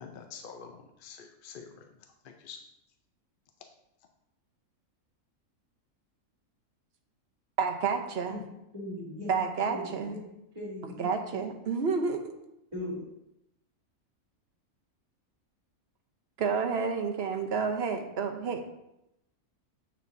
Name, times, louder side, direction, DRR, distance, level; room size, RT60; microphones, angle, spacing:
voice 1, 0.0-1.8 2.2-2.6, left 6 dB, 60° left, 4 dB, 0.6 m, -46 dB
voice 2, 7.6-8.4 9.3-10.1 10.8-12.2 16.4-18.7, right 5 dB, 55° right, 4 dB, 0.9 m, -30 dB
voice 3, 8.7-9.3 9.7-10.2 10.5-11.5 12.7-13.0, left 1 dB, 20° right, -8 dB, 2.8 m, -39 dB
7.7 x 6.5 x 2.6 m, 0.85 s
omnidirectional pair, 1.5 m